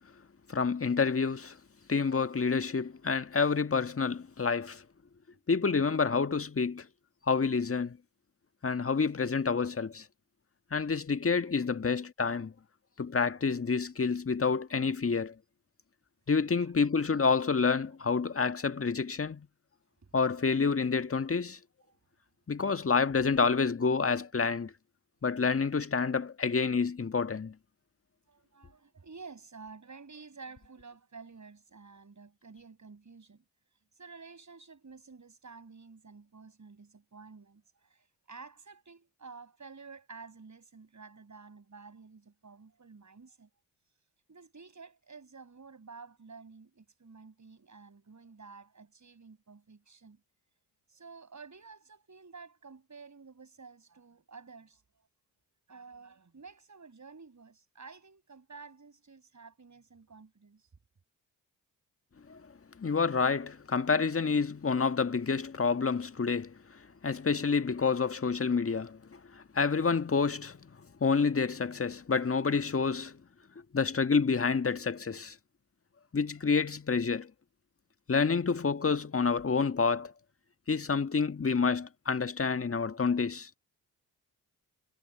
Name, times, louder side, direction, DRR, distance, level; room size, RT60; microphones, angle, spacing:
voice 1, 0.5-1.6 1.9-4.8 5.5-6.9 7.3-8.0 8.6-10.0 10.7-12.5 13.0-15.3 16.3-19.5 20.1-21.6 22.5-24.7 25.2-27.5 62.3-62.4 62.8-66.5 67.0-70.7 71.0-73.2 73.7-75.3 76.1-77.3 78.1-80.1 80.7-83.5, left 5 dB, 30° left, 1.7 m, -28 dB
voice 2, 20.0-20.5 21.8-22.0 28.3-33.4 33.9-43.5 44.3-50.2 50.9-54.8 55.7-60.7, right 4 dB, 35° right, 7.8 m, -51 dB
hypercardioid pair, 40°, 47 cm